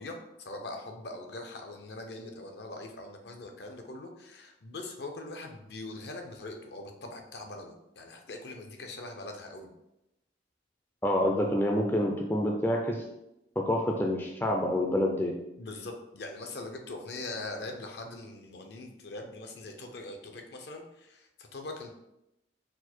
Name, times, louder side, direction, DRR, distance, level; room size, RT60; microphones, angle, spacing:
voice 1, 0.0-9.7 15.6-21.9, left 2 dB, 60° left, 4 dB, 0.6 m, -42 dB
voice 2, 11.0-13.0 13.6-15.3, left 1 dB, 10° left, 0 dB, 0.4 m, -27 dB
4.5 x 2.2 x 4.3 m, 0.88 s
head